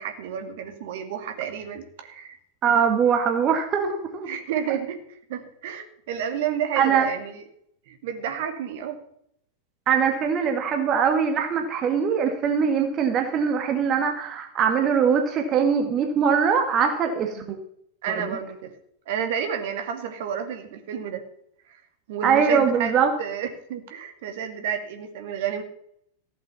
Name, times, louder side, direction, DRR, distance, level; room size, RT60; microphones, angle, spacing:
voice 1, 0.0-2.4 4.3-7.4 7.9-9.0 17.3-17.5 18.0-18.7 19.1-21.2 21.7-21.8 22.1-22.9 23.2-25.6, right 8 dB, 55° right, 6 dB, 2.2 m, -31 dB
voice 2, 2.6-4.3 6.8-7.1 9.9-17.6 18.2-18.4 22.2-23.1, right 7 dB, 30° right, 5 dB, 1.7 m, -22 dB
15.0 x 7.7 x 7.0 m, 0.70 s
figure-of-eight pair, 90°, 0 cm